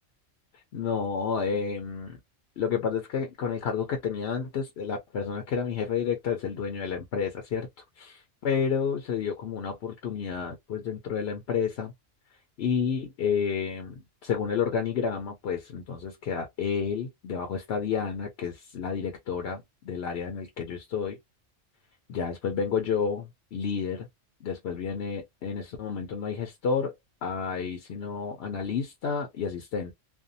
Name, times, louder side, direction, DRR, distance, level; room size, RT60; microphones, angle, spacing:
voice 1, 0.7-2.2 2.6-7.7 8.0-11.9 12.6-21.2 22.1-24.1 24.4-26.9 27.2-29.9, left 6 dB, 65° left, 0.8 m, -30 dB
2.6 x 2.2 x 2.6 m
omnidirectional pair, 1.3 m